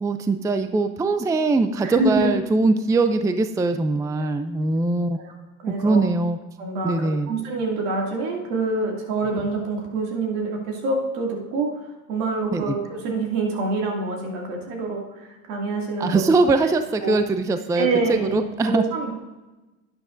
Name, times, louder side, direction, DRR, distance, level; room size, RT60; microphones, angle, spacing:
voice 1, 0.0-5.2 5.8-6.4 6.8-7.3 12.5-12.7 16.0-18.8, right 3 dB, 10° right, 9 dB, 0.4 m, -22 dB
voice 2, 1.8-2.3 5.2-5.3 5.6-6.0 6.6-11.7 12.1-16.2 17.0-17.2 17.8-19.1, right 3 dB, 70° right, -1 dB, 2.5 m, -26 dB
11.0 x 9.9 x 2.6 m, 1.1 s
hypercardioid pair, 80°, 43 cm